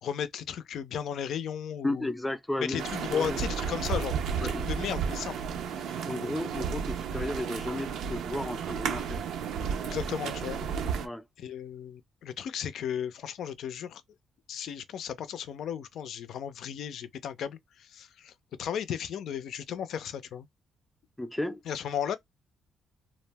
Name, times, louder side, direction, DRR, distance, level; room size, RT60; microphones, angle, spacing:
voice 1, 0.0-2.1 2.6-4.2 4.4-5.3 5.7-6.1 9.8-10.6 11.4-14.0 14.5-18.3 18.6-20.5 21.7-22.2, left 8 dB, 70° left, 0.4 m, -35 dB
voice 2, 1.8-2.8 3.1-3.4 4.4-4.6 6.0-9.2 11.0-11.3 21.2-21.6, left 1 dB, 10° left, 0.4 m, -33 dB
sound 1, 2.8-11.1, right 7 dB, 80° right, 0.5 m, -33 dB
2.4 x 2.1 x 3.3 m
cardioid pair, 90°, 0 cm